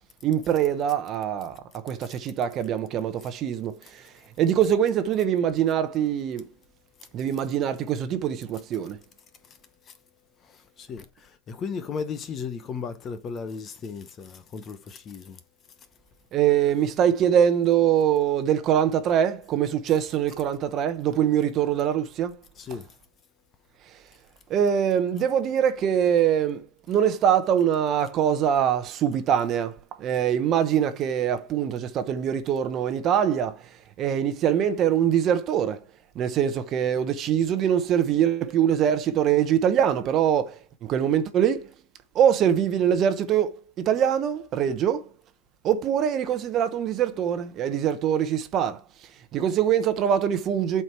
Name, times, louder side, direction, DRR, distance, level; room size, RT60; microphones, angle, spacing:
voice 1, 0.2-1.5 1.9-2.0 2.2-3.1 3.4-3.7 4.4-6.4 7.1-8.9 16.3-22.3 24.5-26.6 26.9-29.7 30.0-33.5 34.0-35.8 36.2-40.5 40.9-41.6 42.2-43.5 43.9-45.0 45.6-48.7 49.3-50.8, right 9 dB, 30° right, 0.9 m, -23 dB
voice 2, 9.4-10.0 10.4-15.4 15.8-15.9 22.5-22.9, left 5 dB, 25° left, 0.8 m, -36 dB
7.9 x 4.6 x 4.4 m
supercardioid pair, 140°, 0 cm